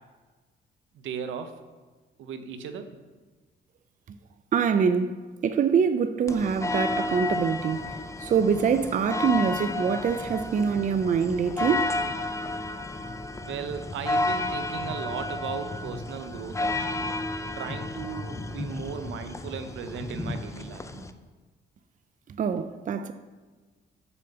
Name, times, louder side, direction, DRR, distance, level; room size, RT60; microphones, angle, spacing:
voice 1, 0.9-1.5 2.2-2.9 13.4-17.2 17.6-21.1, right 7 dB, 80° right, 0.8 m, -37 dB
voice 2, 4.5-5.1 5.4-11.9 22.4-23.1, right 6 dB, 40° right, 0.5 m, -25 dB
sound 1, 6.3-21.1, left 2 dB, 15° left, 0.5 m, -32 dB
7.0 x 5.1 x 6.8 m
cardioid pair, 90°, 20 cm